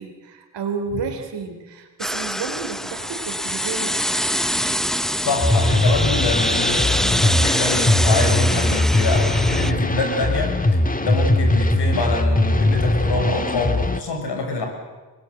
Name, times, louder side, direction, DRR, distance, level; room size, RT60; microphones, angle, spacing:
voice 1, 0.0-4.0, right 5 dB, 75° right, 4 dB, 3.9 m, -31 dB
sound 1, 2.0-9.7, equal, ahead, 0.8 m, -24 dB
voice 2, 5.2-14.7, left 2 dB, 70° left, 3 dB, 6.8 m, -25 dB
sound 2, 5.4-14.0, left 2 dB, 20° left, 2.0 m, -20 dB
24.5 x 20.5 x 8.2 m, 1.3 s
supercardioid pair, 50°, 42 cm